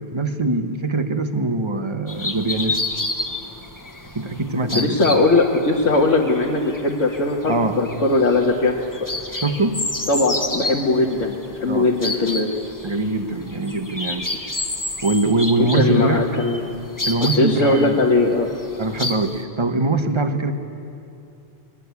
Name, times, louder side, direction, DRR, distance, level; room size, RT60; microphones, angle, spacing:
voice 1, 0.1-2.8 4.1-5.2 7.5-7.8 9.3-9.8 11.7-11.9 12.8-14.3 15.0-16.2 17.1-18.0 18.8-20.5, right 2 dB, 25° right, 8 dB, 1.4 m, -22 dB
sound 1, 2.1-19.4, left 2 dB, 15° left, 1.3 m, -31 dB
voice 2, 4.7-8.8 10.1-12.5 15.7-16.8 17.3-18.5, left 2 dB, 85° left, -2 dB, 2.0 m, -19 dB
29.5 x 21.5 x 8.4 m, 2.6 s
omnidirectional pair, 1.2 m